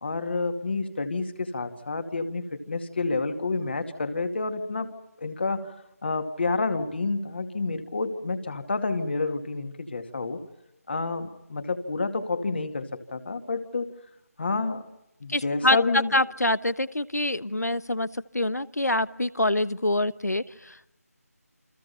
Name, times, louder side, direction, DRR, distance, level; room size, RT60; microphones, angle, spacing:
voice 1, 0.0-4.9 5.2-5.7 6.0-10.4 10.9-13.9 14.4-14.8 15.2-16.2, left 3 dB, 40° left, 7 dB, 2.3 m, -29 dB
voice 2, 15.3-18.1 18.3-21.0, left 1 dB, 85° left, 16 dB, 1.2 m, -26 dB
29.5 x 24.0 x 5.7 m, 0.90 s
figure-of-eight pair, 165°, 9 cm